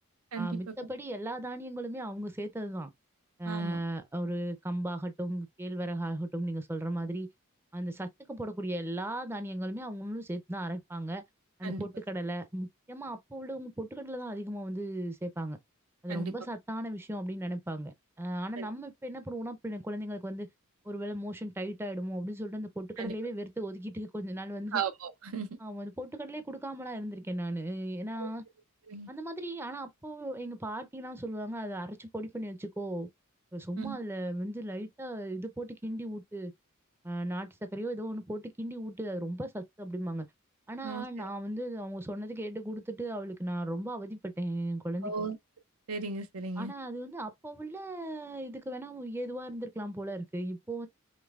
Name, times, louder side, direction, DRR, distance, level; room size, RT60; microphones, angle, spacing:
voice 1, 0.3-2.9 3.4-7.3 7.7-11.2 11.6-15.6 16.0-20.5 20.8-24.8 25.6-28.4 29.1-33.1 33.5-36.5 37.0-40.3 40.7-45.1 46.6-50.9, right 1 dB, 10° right, 0.5 m, -36 dB
voice 2, 3.5-3.8 11.6-11.9 16.1-16.3 18.6-18.7 23.0-23.1 24.7-25.6 28.2-28.3 28.9-29.1 33.8-34.0 40.8-41.3 45.0-45.4 45.9-46.7, right 5 dB, 85° right, 0.6 m, -36 dB
5.2 x 3.1 x 2.3 m
head